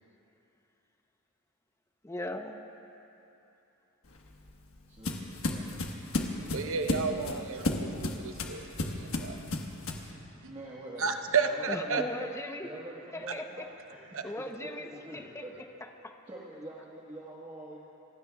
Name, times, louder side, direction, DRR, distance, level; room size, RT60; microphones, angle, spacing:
voice 1, 2.0-2.6 11.7-12.7 13.1-13.7 14.2-14.9 15.1-15.4 15.8-16.1, left 1 dB, 15° left, 5 dB, 0.7 m, -38 dB
sound 1, 4.1-10.1, left 2 dB, 70° left, 1.3 m, -34 dB
voice 2, 4.9-5.8 7.1-7.4 10.5-11.1 11.4-12.3 12.6-13.6 14.4-15.6 16.3-17.8, right 1 dB, 25° right, -6 dB, 1.5 m, -45 dB
voice 3, 6.3-9.5 10.4-10.6 11.0-12.0 14.1-14.3, right 5 dB, 65° right, 6 dB, 0.8 m, -32 dB
28.5 x 16.0 x 2.3 m, 3.0 s
head